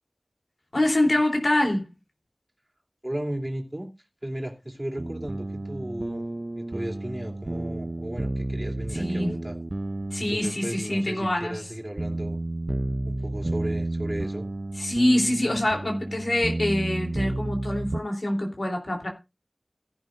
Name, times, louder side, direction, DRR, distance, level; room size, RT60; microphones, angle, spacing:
voice 1, 0.7-1.9 8.9-9.4 10.1-11.6 14.8-19.1, left 1 dB, 85° left, 3.2 m, -25 dB
voice 2, 3.0-3.9 4.2-6.2 6.6-9.6 10.2-12.4 13.1-14.5, right 1 dB, 25° right, 2.7 m, -35 dB
sound 1, 5.0-18.0, right 2 dB, 55° right, 0.5 m, -32 dB
16.5 x 11.0 x 2.6 m
wide cardioid pair, 45°, 0 cm